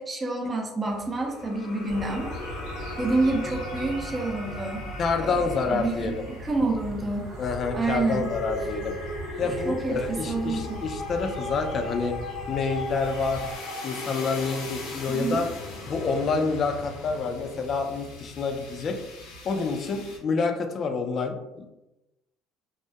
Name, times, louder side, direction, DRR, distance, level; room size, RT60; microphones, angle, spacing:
voice 1, 0.0-2.3 3.0-4.8 5.2-7.3 7.7-8.3 9.4-10.8 15.1-15.4, right 2 dB, 25° right, 0 dB, 0.5 m, -28 dB
sound 1, 0.9-20.2, left 2 dB, 80° left, 0.6 m, -39 dB
sound 2, 1.9-13.6, right 1 dB, 75° right, 1.0 m, -39 dB
voice 2, 5.0-6.2 7.4-8.9 9.4-12.2 12.5-13.4 13.8-15.5 15.9-19.0 19.4-21.7, left 4 dB, 45° left, 5 dB, 0.3 m, -28 dB
2.2 x 2.0 x 2.7 m, 0.97 s
supercardioid pair, 100°, 0 cm